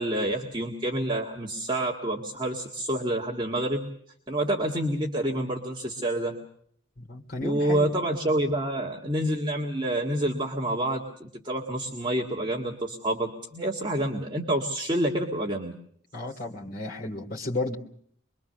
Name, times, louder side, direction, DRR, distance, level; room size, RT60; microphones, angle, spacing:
voice 1, 0.0-3.9 4.3-6.4 7.4-15.7, right 1 dB, 20° right, -1 dB, 1.9 m, -28 dB
voice 2, 7.0-7.9 16.1-17.8, left 2 dB, 45° left, 0 dB, 2.8 m, -33 dB
25.0 x 22.5 x 6.8 m, 0.64 s
head